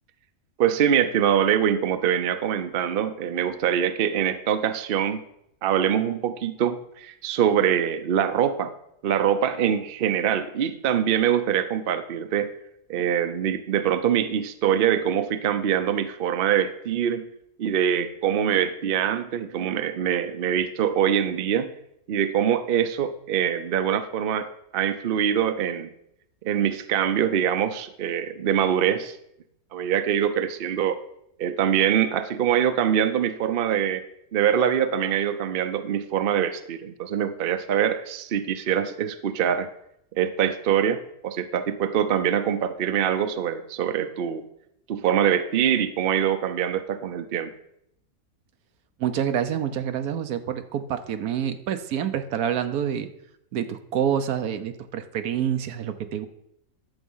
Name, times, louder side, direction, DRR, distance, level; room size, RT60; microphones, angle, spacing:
voice 1, 0.6-5.2 5.6-8.7 9.0-12.5 12.9-17.3 17.6-21.7 22.1-25.9 26.4-29.2 29.7-31.0 31.4-34.0 34.3-39.7 40.1-44.4 44.9-47.5, right 9 dB, 50° right, 10 dB, 0.7 m, -24 dB
voice 2, 49.0-53.1 53.5-56.3, right 9 dB, 80° right, 9 dB, 1.3 m, -27 dB
11.0 x 7.3 x 5.5 m, 0.79 s
omnidirectional pair, 1.6 m